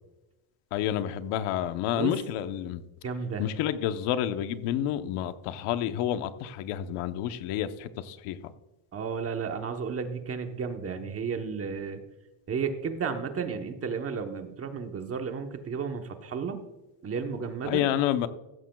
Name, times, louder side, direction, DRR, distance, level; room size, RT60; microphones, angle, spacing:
voice 1, 0.7-2.8 3.4-8.5 17.6-18.3, left 11 dB, 90° left, 10 dB, 1.0 m, -29 dB
voice 2, 3.0-3.4 8.9-12.0 12.5-16.6 17.0-17.8, right 6 dB, 30° right, 6 dB, 1.0 m, -33 dB
15.5 x 13.5 x 2.3 m, 1.0 s
cardioid pair, 160°, 50 cm